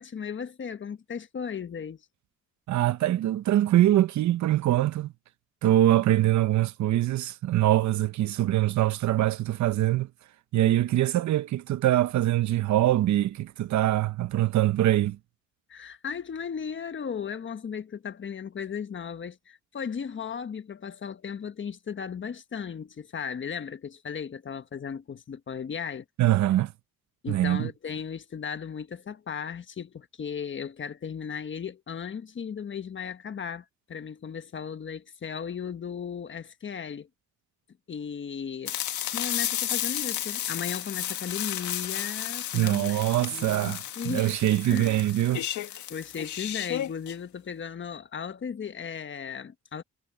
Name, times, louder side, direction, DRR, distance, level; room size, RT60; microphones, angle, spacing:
voice 1, 0.0-2.0 15.7-26.0 27.2-37.1 37.9-44.3 44.7-45.0 45.9-49.8, left 7 dB, 40° left, 1.3 m, -36 dB
voice 2, 2.7-5.1 5.6-10.1 10.5-15.2 26.2-26.7 27.3-27.7 42.5-43.8 44.0-45.4, right 13 dB, 70° right, 0.8 m, -23 dB
sound 1, 38.7-47.2, left 11 dB, 75° left, 1.9 m, -33 dB
cardioid pair, 90°, 30 cm